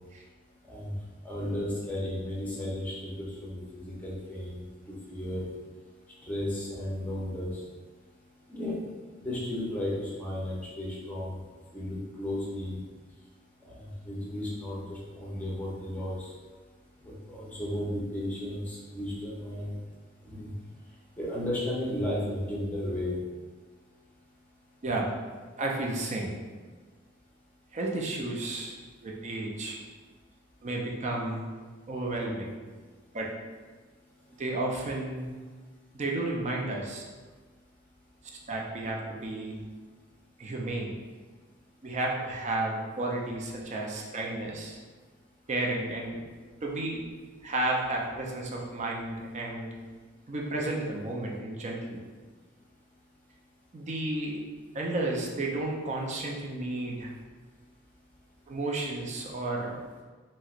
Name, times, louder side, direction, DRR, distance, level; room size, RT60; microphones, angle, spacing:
voice 1, 1.2-4.6 4.9-5.5 6.2-7.5 8.5-8.8 9.2-11.3 11.7-12.8 13.6-16.3 17.0-19.8 20.2-20.5 21.2-23.2, left 1 dB, 10° left, -6 dB, 0.6 m, -34 dB
voice 2, 25.6-26.3 27.7-28.8 29.0-29.8 30.6-31.5 31.9-32.6 33.1-33.3 34.4-35.3 35.9-37.0 38.5-39.6 40.4-40.9 41.8-44.8 45.5-46.2 46.6-47.0 47.4-49.7 50.3-52.0 53.7-54.4 54.7-57.1 58.5-59.8, right 2 dB, 35° right, -1 dB, 0.5 m, -32 dB
3.1 x 2.8 x 2.4 m, 1.4 s
head